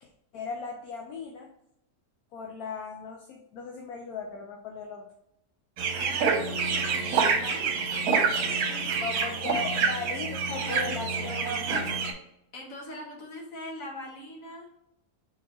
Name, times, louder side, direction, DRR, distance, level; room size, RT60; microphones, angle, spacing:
voice 1, 0.0-1.5 2.3-5.1 9.0-12.0, left 4 dB, 75° left, 2 dB, 1.1 m, -37 dB
sound 1, 5.8-12.1, right 5 dB, 70° right, 1.2 m, -27 dB
voice 2, 6.0-7.8 8.3-9.0 12.5-14.7, left 1 dB, 55° left, -1 dB, 1.7 m, -42 dB
4.2 x 4.2 x 3.0 m, 0.82 s
omnidirectional pair, 1.7 m